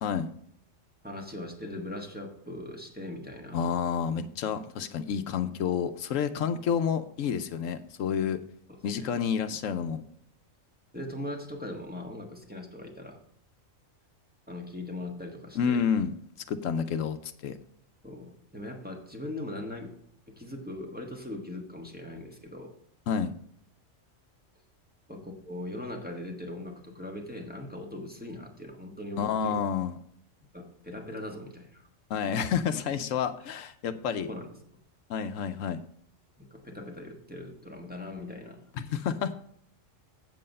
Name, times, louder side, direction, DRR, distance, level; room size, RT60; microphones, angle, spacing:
voice 1, 0.0-0.3 3.5-8.4 8.8-10.0 15.6-16.2 16.5-17.6 23.1-23.3 29.2-30.0 32.1-34.3 35.1-35.8 38.9-39.3, left 7 dB, 80° left, 10 dB, 1.0 m, -29 dB
voice 2, 1.0-3.7 8.7-9.2 10.9-13.2 14.5-15.9 18.0-19.9 20.3-22.7 25.1-29.6 30.5-31.8 34.3-34.8 36.4-38.7, left 1 dB, 5° right, 0 dB, 1.4 m, -40 dB
7.7 x 7.6 x 5.3 m, 0.66 s
omnidirectional pair, 1.3 m